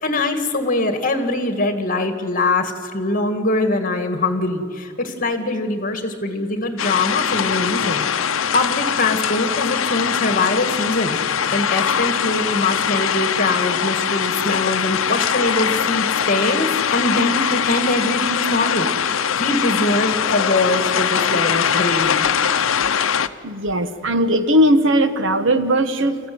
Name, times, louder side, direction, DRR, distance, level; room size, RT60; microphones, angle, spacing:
voice 1, 0.0-8.1 8.5-11.2 11.5-18.9 19.4-22.3, left 2 dB, 45° left, 7 dB, 2.1 m, -22 dB
sound 1, 6.8-23.3, left 8 dB, 80° left, 0.7 m, -21 dB
voice 2, 23.4-26.3, equal, 65° right, 10 dB, 1.2 m, -18 dB
27.0 x 14.5 x 9.5 m, 2.2 s
head